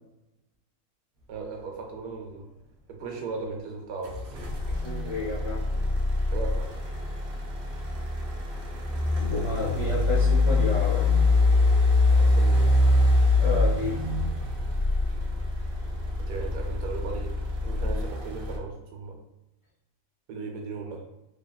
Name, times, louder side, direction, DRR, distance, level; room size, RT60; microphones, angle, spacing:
voice 1, 1.3-2.4 2.9-4.2 6.3-6.7 12.1-12.7 16.2-17.3 17.6-19.1 20.3-21.0, right 4 dB, 85° right, 2 dB, 1.1 m, -37 dB
sound 1, 4.0-18.6, left 2 dB, 60° right, 0.7 m, -24 dB
voice 2, 4.7-5.7 9.2-11.2 13.4-14.2, left 1 dB, 55° left, -7 dB, 0.3 m, -31 dB
2.7 x 2.5 x 2.2 m, 0.95 s
omnidirectional pair, 1.5 m